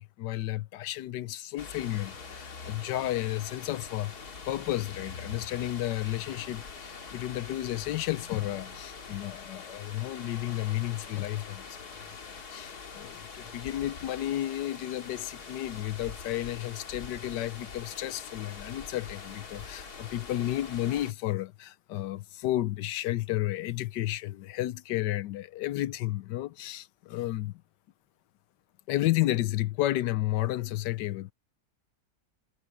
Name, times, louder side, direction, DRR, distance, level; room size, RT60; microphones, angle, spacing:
voice 1, 0.0-27.6 28.9-31.3, left 15 dB, 75° left, 1.2 m, -32 dB
sound 1, 1.6-21.1, left 5 dB, 60° left, 2.5 m, -44 dB
omnidirectional pair, 2.0 m